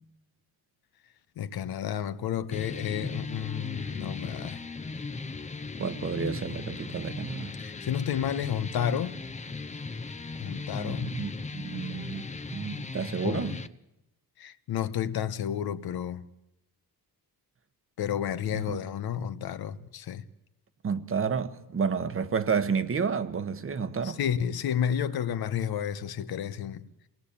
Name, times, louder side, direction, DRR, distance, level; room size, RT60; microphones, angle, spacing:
voice 1, 1.4-4.6 7.6-9.2 10.4-11.2 13.2-13.5 14.4-16.2 18.0-20.2 24.0-26.9, left 9 dB, 75° left, 1.2 m, -31 dB
sound 1, 2.5-13.7, left 3 dB, 20° left, 0.8 m, -38 dB
voice 2, 5.8-7.5 10.8-12.3 12.5-13.5 18.5-18.8 20.8-24.2, right 6 dB, 35° right, 1.3 m, -30 dB
27.5 x 19.5 x 8.6 m
cardioid pair, 145°, 38 cm